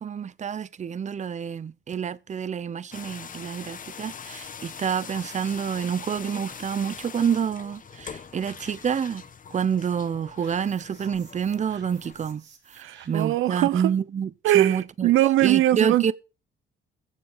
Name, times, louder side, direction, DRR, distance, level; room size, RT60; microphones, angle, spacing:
voice 1, 0.0-9.2 9.5-12.4 12.7-15.1 15.4-16.1, right 7 dB, 35° right, 0.7 m, -28 dB
sound 1, 2.9-12.3, left 7 dB, 40° left, 1.1 m, -42 dB
sound 2, 10.4-13.4, right 6 dB, 60° right, 4.7 m, -54 dB
voice 2, 12.8-13.9 14.4-16.1, right 14 dB, 80° right, 0.6 m, -21 dB
15.0 x 7.0 x 5.6 m
cardioid pair, 90°, 20 cm